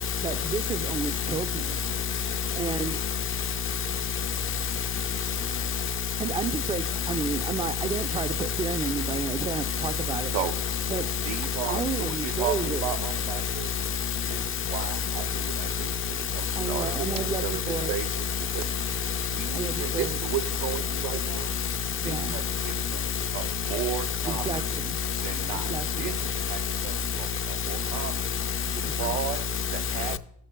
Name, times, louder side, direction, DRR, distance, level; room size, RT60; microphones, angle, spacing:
voice 1, 0.2-1.8 2.5-3.0 6.2-10.3 10.9-11.1 11.6-12.9 16.6-17.9 19.5-20.2 22.0-22.4 24.2-25.0 25.5-26.1 28.8-29.2, right 5 dB, 15° right, 0.4 m, -32 dB
voice 2, 2.8-3.2 5.3-5.9 7.3-7.4 8.4-8.5 9.1-9.2 10.5-10.6 10.9-11.4 13.0-13.1 13.4-13.5 14.7-14.8 15.4-15.5 16.9-17.1 18.8-19.2 19.7-19.8 21.5-21.6 22.3-22.7 24.6-24.7 25.0-25.1 26.1-26.2 28.0-28.1 28.3-28.8 29.2-29.3 29.6-29.8, left 6 dB, 40° left, 0.5 m, -29 dB
voice 3, 11.2-13.8 14.3-21.5 22.0-24.6 25.2-28.3 28.8-29.5 29.7-30.2, right 11 dB, 75° right, 0.6 m, -35 dB
13.0 x 6.5 x 2.2 m
supercardioid pair, 80°, 34 cm